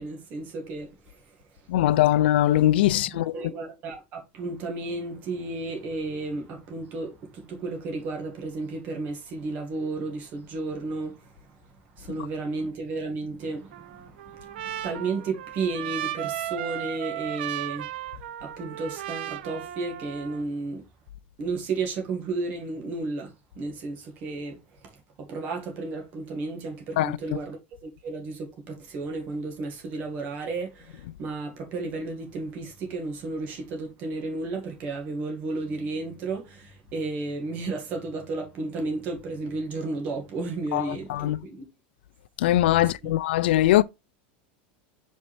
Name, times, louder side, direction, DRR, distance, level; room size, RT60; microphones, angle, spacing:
voice 1, 0.0-1.7 2.9-17.9 18.4-20.8 21.4-41.6 42.8-43.2, right 3 dB, 30° right, 1.9 m, -33 dB
voice 2, 1.7-3.3 27.0-27.1 40.7-40.8 41.1-41.4 42.4-43.8, left 14 dB, 80° left, 0.4 m, -21 dB
Trumpet, 13.7-20.4, right 13 dB, 75° right, 0.6 m, -35 dB
5.4 x 5.2 x 3.3 m
supercardioid pair, 175°, 5 cm